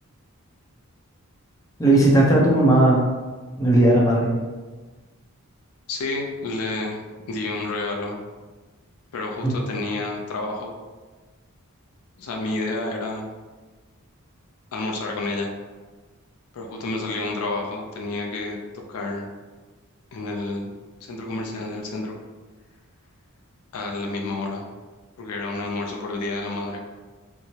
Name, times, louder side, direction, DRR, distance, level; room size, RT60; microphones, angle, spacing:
voice 1, 1.8-3.1 3.6-4.3 9.4-9.5, right 1 dB, 15° left, -4 dB, 0.6 m, -16 dB
voice 2, 5.9-7.0 7.3-8.2 9.1-10.7 12.2-13.3 14.7-15.5 16.5-19.3 20.1-20.7 21.0-22.1 23.7-24.7 25.2-26.8, left 2 dB, 70° left, 1 dB, 0.5 m, -29 dB
4.4 x 2.0 x 2.8 m, 1.3 s
head